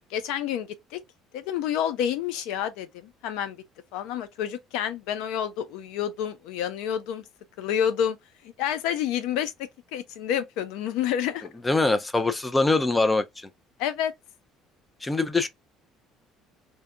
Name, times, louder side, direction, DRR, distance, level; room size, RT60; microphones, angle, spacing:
voice 1, 0.1-1.0 1.3-3.6 3.9-7.2 7.6-8.2 8.4-11.5 13.8-14.1, left 9 dB, 80° left, 0.5 m, -29 dB
voice 2, 11.6-13.2 15.0-15.5, left 3 dB, 10° left, 0.3 m, -23 dB
2.7 x 2.2 x 2.3 m
cardioid pair, 140°, 0 cm